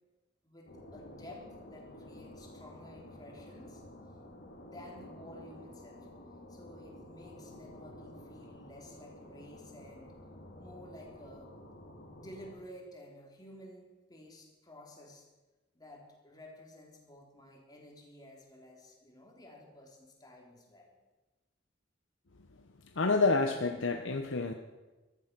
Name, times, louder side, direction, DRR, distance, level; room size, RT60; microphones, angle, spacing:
voice 1, 0.4-3.8 4.6-6.1 6.5-10.1 10.6-11.5 12.1-15.3 15.7-21.0, left 1 dB, 20° left, -1 dB, 3.2 m, -52 dB
sound 1, 0.7-12.5, left 1 dB, 55° left, 2.6 m, -51 dB
voice 2, 23.0-24.5, left 3 dB, 85° left, 5 dB, 0.9 m, -28 dB
14.0 x 13.0 x 6.1 m, 1.2 s
head